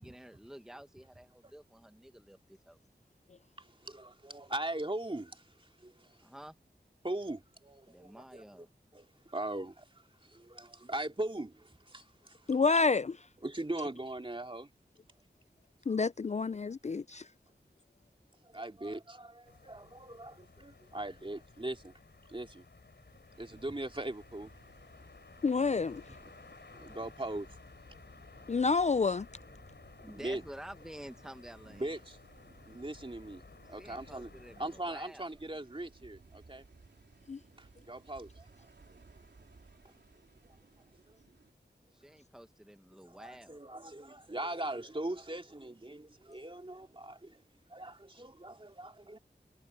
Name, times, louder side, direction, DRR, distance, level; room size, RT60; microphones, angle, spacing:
voice 1, 0.0-2.8 6.2-6.6 7.9-8.7 30.0-32.0 33.8-35.3 41.9-43.6, right 1 dB, 5° right, 1.2 m, -50 dB
voice 2, 3.6-6.3 7.0-8.7 8.9-12.5 13.4-14.7 18.4-21.9 22.3-22.6 23.4-24.6 26.2-26.4 26.7-27.5 28.4-28.5 30.1-30.4 31.7-32.2 32.5-33.4 33.7-34.3 34.6-36.6 37.6-38.5 39.8-39.9 40.9-41.2 43.0-47.4 47.7-49.2, right 1 dB, 30° right, 2.5 m, -40 dB
voice 3, 12.5-13.2 15.9-17.3 25.4-26.0 28.5-29.3 37.3-37.4, left 4 dB, 40° left, 0.4 m, -28 dB
Berlin Street Night Ambience, 19.4-34.8, left 3 dB, 85° left, 3.9 m, -56 dB
sound 1, 23.3-41.5, right 3 dB, 90° right, 4.0 m, -61 dB
wide cardioid pair, 50°, 17 cm